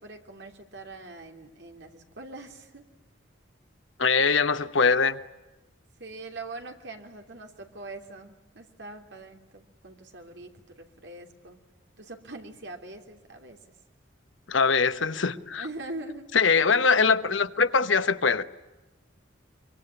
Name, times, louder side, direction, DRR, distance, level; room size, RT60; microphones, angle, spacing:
voice 1, 0.0-2.9 6.0-11.6 12.0-13.6 15.5-16.3 16.6-16.9, right 2 dB, 60° right, 3.1 m, -42 dB
voice 2, 4.0-5.2 14.5-15.6 16.3-18.4, left 5 dB, 80° left, 1.1 m, -22 dB
25.0 x 23.5 x 10.0 m
head